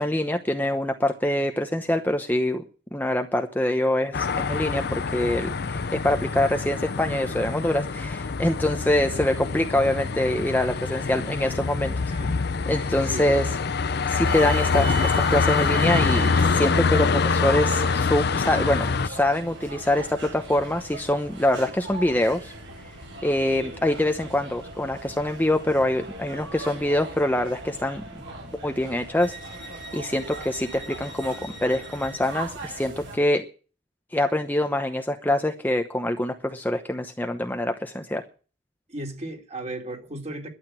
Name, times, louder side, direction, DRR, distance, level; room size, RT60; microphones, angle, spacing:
voice 1, 0.0-2.6 2.9-11.9 12.7-13.4 14.1-22.5 23.2-28.0 28.6-29.3 29.9-33.4 34.1-38.2, left 1 dB, 10° left, 0.9 m, -25 dB
sound 1, 4.1-19.1, left 4 dB, 60° left, 0.6 m, -25 dB
voice 2, 5.3-5.7 10.9-11.3 12.1-13.5 38.9-40.5, right 1 dB, 35° right, 3.1 m, -37 dB
sound 2, 14.2-33.2, right 2 dB, 75° right, 7.2 m, -38 dB
12.0 x 8.2 x 8.9 m
head